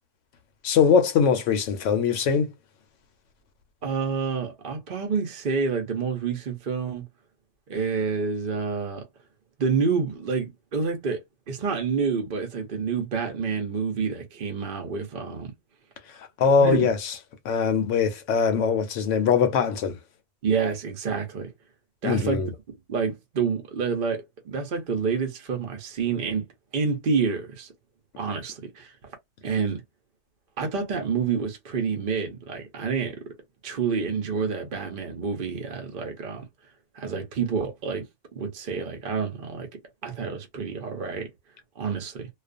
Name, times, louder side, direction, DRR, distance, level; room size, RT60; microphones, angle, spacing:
voice 1, 0.6-2.5 16.2-17.1 17.4-20.0 22.0-22.5, left 6 dB, 75° left, 0.9 m, -22 dB
voice 2, 3.8-7.1 7.7-9.0 9.6-15.5 16.6-16.9 20.4-21.5 22.0-22.4 22.7-26.5 26.7-27.7 28.2-28.9 29.4-29.8 30.6-33.2 33.6-36.4 36.9-38.1 38.3-39.7 40.0-41.3 41.8-42.3, right 5 dB, 45° right, 0.8 m, -28 dB
2.4 x 2.3 x 2.4 m
omnidirectional pair, 1.3 m